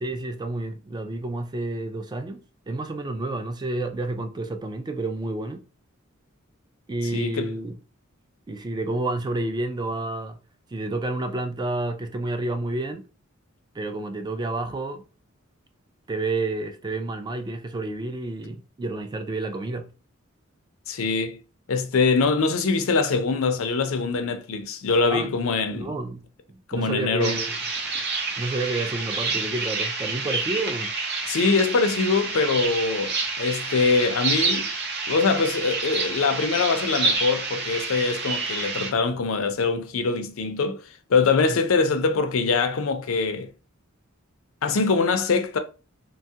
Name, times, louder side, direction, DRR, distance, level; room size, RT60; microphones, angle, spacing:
voice 1, 0.0-5.6 6.9-7.8 8.5-10.4 10.7-13.0 13.8-15.0 16.1-19.9 25.1-25.4 25.7-26.2 26.5-27.6 28.4-30.9 41.4-41.6, right 2 dB, 20° right, 0.3 m, -30 dB
voice 2, 7.1-7.5 20.9-21.4 21.7-26.0 26.7-27.4 31.3-34.7 35.1-40.8 41.1-43.5 44.6-45.6, left 4 dB, 70° left, 0.5 m, -23 dB
sound 1, 27.2-38.9, right 4 dB, 55° right, 0.6 m, -28 dB
3.0 x 2.3 x 2.7 m
head